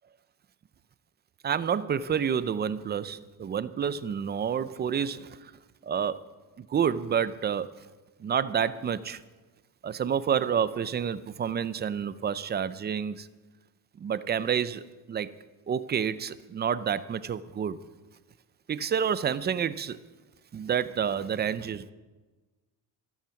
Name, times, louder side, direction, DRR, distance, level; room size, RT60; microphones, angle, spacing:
voice 1, 1.4-5.4 5.8-6.2 6.6-7.7 8.2-9.2 9.8-13.3 14.0-15.3 15.7-17.8 18.7-20.0 20.5-21.9, right 8 dB, 25° right, 15 dB, 0.4 m, -29 dB
13.5 x 13.0 x 5.8 m, 1.2 s
cardioid pair, 170°, 41 cm